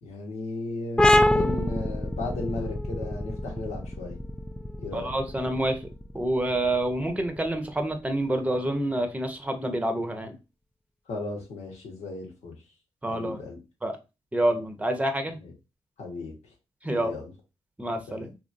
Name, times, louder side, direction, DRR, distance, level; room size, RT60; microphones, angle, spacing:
voice 1, 0.0-4.2 4.8-5.1 11.1-12.6 13.1-13.6 15.4-15.5 16.0-16.5 16.9-17.3 18.1-18.2, left 2 dB, 75° left, 0 dB, 1.2 m, -35 dB
sound 1, 1.0-8.3, left 1 dB, 5° left, 0.4 m, -26 dB
voice 2, 4.9-5.8 6.1-10.4 13.0-13.4 13.8-14.0 14.3-15.4 16.8-17.1 17.8-18.3, right 1 dB, 10° right, 6 dB, 0.8 m, -27 dB
2.9 x 2.7 x 2.5 m, 0.27 s
supercardioid pair, 50°, 11 cm